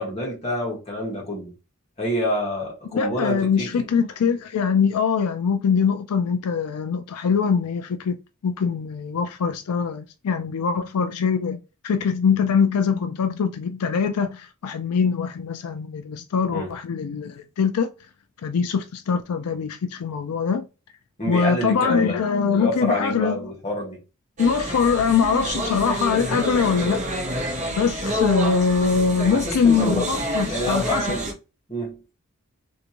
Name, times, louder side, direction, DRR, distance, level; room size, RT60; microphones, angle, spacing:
voice 1, 0.0-1.5 2.0-3.9 16.5-16.7 21.2-22.2 22.5-24.0 29.2-30.1 30.5-31.3 31.7-32.0, left 1 dB, 30° left, 1.5 m, -27 dB
voice 2, 2.9-8.2 8.4-17.9 18.4-20.6 21.3-23.4 24.4-27.0 27.8-31.1, left 6 dB, 90° left, 0.4 m, -23 dB
sound 1, 24.4-31.3, right 1 dB, 35° right, 0.9 m, -28 dB
3.4 x 2.7 x 2.9 m
head